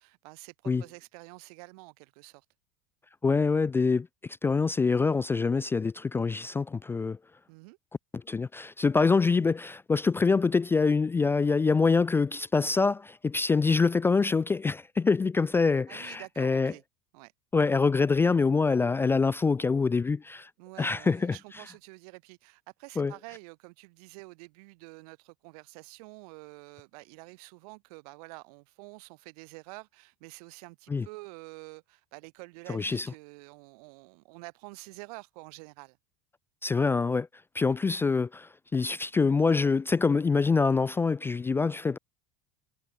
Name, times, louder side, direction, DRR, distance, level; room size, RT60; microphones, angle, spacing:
voice 1, 0.0-2.4 7.5-7.8 15.9-16.8 17.1-17.3 20.6-36.0 37.6-37.8, right 27 dB, 75° right, 4.9 m, -48 dB
voice 2, 3.2-4.1 4.4-7.2 8.1-16.7 17.5-20.5 20.8-21.4 23.0-23.1 30.9-31.1 32.7-33.1 36.6-37.3 37.5-42.0, left 4 dB, 10° left, 0.3 m, -25 dB
supercardioid pair, 135°, 19 cm